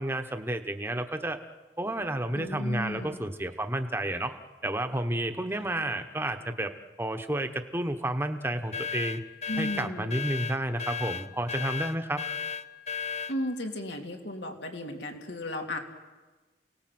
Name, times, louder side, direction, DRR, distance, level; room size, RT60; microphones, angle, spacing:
voice 1, 0.0-1.4 1.8-4.3 4.6-6.7 7.0-9.2 9.6-12.2, right 1 dB, 15° right, 7 dB, 1.2 m, -31 dB
voice 2, 2.3-3.2 9.5-10.1 13.3-15.8, left 1 dB, 85° left, 2 dB, 3.1 m, -34 dB
sound 1, 8.7-13.4, left 6 dB, 40° left, 0.7 m, -35 dB
29.0 x 19.0 x 7.8 m, 1.2 s
head